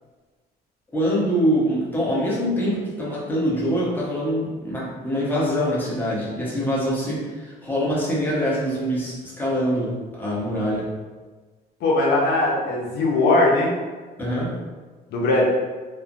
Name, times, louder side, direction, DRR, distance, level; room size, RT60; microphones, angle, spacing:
voice 1, 0.9-10.9 14.2-14.5, equal, 10° left, -7 dB, 0.9 m, -24 dB
voice 2, 11.8-13.8 15.1-15.4, left 2 dB, 75° left, -3 dB, 0.6 m, -19 dB
3.1 x 2.1 x 2.5 m, 1.3 s
cardioid pair, 110°, 17 cm